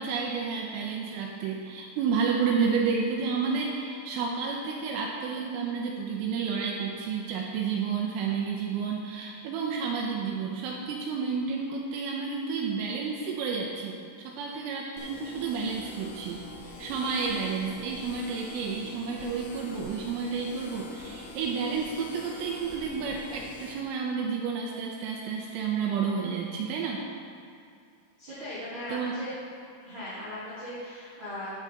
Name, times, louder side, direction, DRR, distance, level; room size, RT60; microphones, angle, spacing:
voice 1, 0.0-27.1 28.9-29.1, right 5 dB, 80° right, -1 dB, 3.1 m, -31 dB
sound 1, 15.0-23.7, left 2 dB, 85° left, 3.8 m, -44 dB
voice 2, 28.2-29.3 29.8-31.6, left 1 dB, 40° right, -11 dB, 1.8 m, -38 dB
10.5 x 8.7 x 4.0 m, 2.3 s
omnidirectional pair, 6.0 m